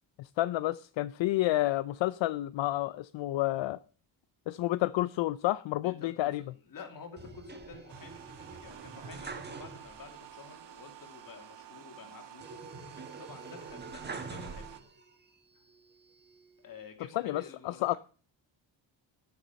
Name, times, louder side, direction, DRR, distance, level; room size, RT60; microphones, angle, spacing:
voice 1, 0.2-3.8 4.5-6.4 17.2-18.0, left 16 dB, 75° left, 0.5 m, -30 dB
voice 2, 5.8-14.8 15.5-15.6 16.6-18.0, left 5 dB, 45° left, 2.7 m, -50 dB
sound 1, 7.2-10.2 10.5-10.6 12.4-15.1 15.7-16.5, right 4 dB, 20° right, 1.2 m, -45 dB
sound 2, 7.9-14.8, right 10 dB, 65° right, 1.4 m, -50 dB
18.0 x 7.3 x 5.2 m
wide cardioid pair, 170°, 45 cm